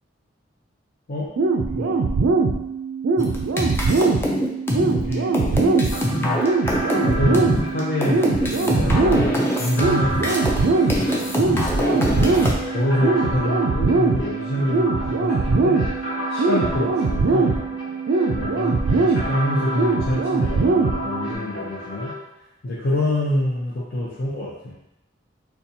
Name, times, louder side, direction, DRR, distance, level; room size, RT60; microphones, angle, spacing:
sound 1, 1.4-21.4, right 3 dB, 70° right, 0.3 m, -22 dB
sound 2, 3.2-10.6 10.9-12.5, equal, 10° left, 0.4 m, -24 dB
voice 1, 4.9-6.4 7.0-11.2 11.9-17.6 18.3-22.1 22.6-24.7, left 1 dB, 50° left, -8 dB, 0.6 m, -27 dB
sound 3, 5.9-22.1, left 1 dB, 80° left, 1.1 m, -32 dB
4.0 x 2.3 x 2.7 m, 0.87 s
head